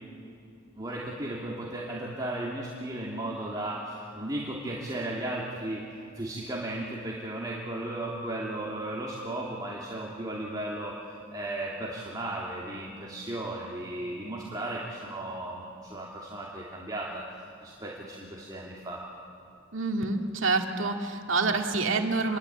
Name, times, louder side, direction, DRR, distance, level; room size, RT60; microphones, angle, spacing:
voice 1, 0.7-5.8 6.2-10.9 11.3-17.2 17.6-19.0, right 1 dB, 20° right, -5 dB, 2.8 m, -35 dB
voice 2, 19.7-22.4, right 3 dB, 75° right, 3 dB, 2.3 m, -27 dB
28.5 x 22.5 x 8.8 m, 2.5 s
head